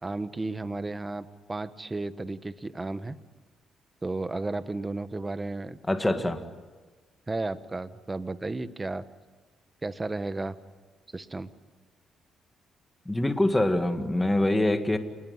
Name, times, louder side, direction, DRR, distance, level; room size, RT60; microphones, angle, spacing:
voice 1, 0.0-3.2 4.0-5.8 6.1-6.2 7.3-9.0 9.8-10.6 11.1-11.5, right 2 dB, 20° right, 12 dB, 1.2 m, -33 dB
voice 2, 5.9-6.4 13.1-15.0, left 1 dB, 10° left, 7 dB, 2.1 m, -24 dB
27.5 x 20.5 x 9.7 m, 1.4 s
cardioid pair, 90°, 0 cm